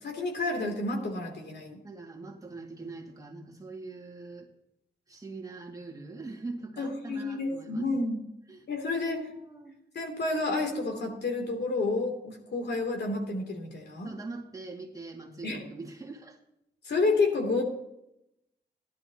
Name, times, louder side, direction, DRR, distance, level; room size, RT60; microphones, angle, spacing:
voice 1, 0.0-1.8 6.8-8.2 8.7-9.2 9.9-14.1 15.4-15.7 16.8-17.6, left 3 dB, 65° left, 2 dB, 2.9 m, -30 dB
voice 2, 1.8-4.5 5.1-7.9 8.5-9.8 14.0-16.4, right 3 dB, 20° right, -1 dB, 2.1 m, -43 dB
17.0 x 11.5 x 2.9 m, 0.84 s
wide cardioid pair, 120°, 18 cm